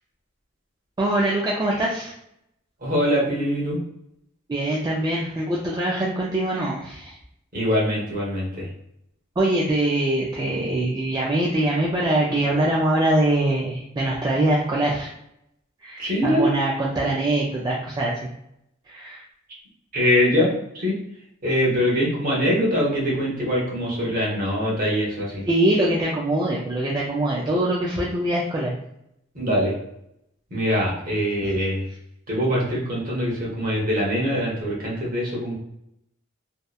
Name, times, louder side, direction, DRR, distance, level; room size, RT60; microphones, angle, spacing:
voice 1, 1.0-2.1 4.5-7.1 9.4-15.1 15.8-18.1 18.9-19.2 25.5-28.7, right 1 dB, 20° right, -4 dB, 0.3 m, -23 dB
voice 2, 2.8-3.8 7.5-8.7 16.0-16.5 19.9-21.0 21.4-25.5 29.3-29.7 30.5-31.9 32.3-35.6, equal, 45° right, -4 dB, 1.0 m, -23 dB
2.8 x 2.1 x 2.2 m, 0.77 s
head